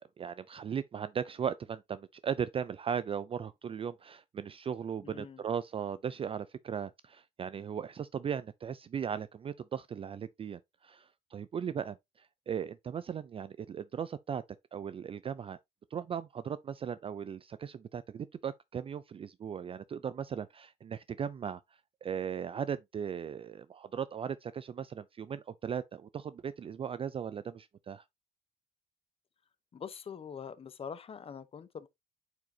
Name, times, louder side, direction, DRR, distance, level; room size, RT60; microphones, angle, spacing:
voice 1, 0.2-14.4 14.7-15.6 15.9-21.6 22.0-28.0, right 7 dB, 35° right, 0.4 m, -37 dB
voice 2, 5.0-5.4 29.7-31.9, left 7 dB, 35° left, 0.9 m, -44 dB
9.1 x 4.9 x 2.8 m
cardioid pair, 110°, 17 cm